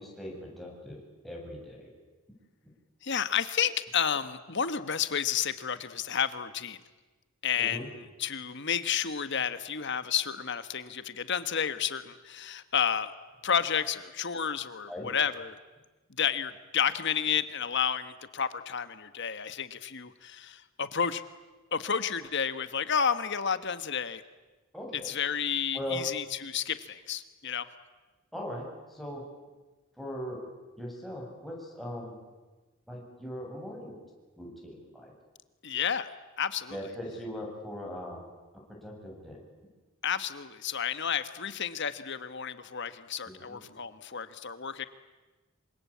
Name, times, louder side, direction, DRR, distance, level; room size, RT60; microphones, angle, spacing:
voice 1, 0.0-1.9 7.6-7.9 14.9-15.1 24.7-25.1 25.7-26.0 28.3-29.2 30.0-30.4 30.8-32.1 32.9-33.9 34.4-35.2 36.7-38.2 38.7-39.4 43.3-43.6, equal, ahead, -2 dB, 7.3 m, -39 dB
voice 2, 3.0-6.8 7.4-13.1 13.4-15.6 16.1-21.2 21.7-24.2 24.9-27.7 35.6-36.1 36.4-36.8 40.0-44.9, left 7 dB, 55° left, 12 dB, 1.4 m, -31 dB
27.0 x 25.0 x 8.5 m, 1.2 s
head